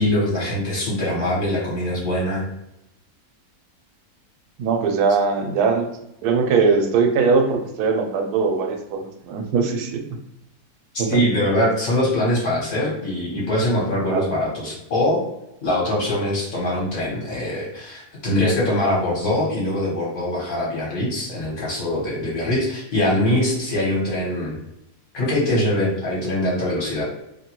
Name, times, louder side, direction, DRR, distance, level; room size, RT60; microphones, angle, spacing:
voice 1, 0.0-2.4 11.1-15.2 15.6-24.6 25.1-27.0, left 1 dB, 55° left, -5 dB, 1.2 m, -22 dB
voice 2, 4.6-5.9 6.2-10.2 11.0-11.2 14.1-14.2, right 5 dB, 85° right, 4 dB, 1.1 m, -21 dB
2.8 x 2.2 x 2.8 m, 0.85 s
omnidirectional pair, 1.6 m